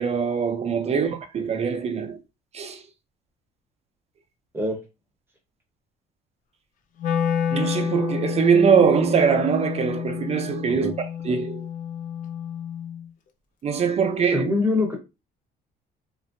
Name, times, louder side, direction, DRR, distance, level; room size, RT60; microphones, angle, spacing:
voice 1, 0.0-2.2 2.5-2.8 7.5-10.9 11.2-11.7 13.6-14.5, right 6 dB, 40° right, 0.6 m, -22 dB
Wind instrument woodwind instrument, 7.0-13.1, left 8 dB, 50° left, 0.5 m, -29 dB
voice 2, 14.3-14.9, left 3 dB, 10° right, 0.9 m, -24 dB
3.0 x 2.5 x 2.6 m
cardioid pair, 110°, 17 cm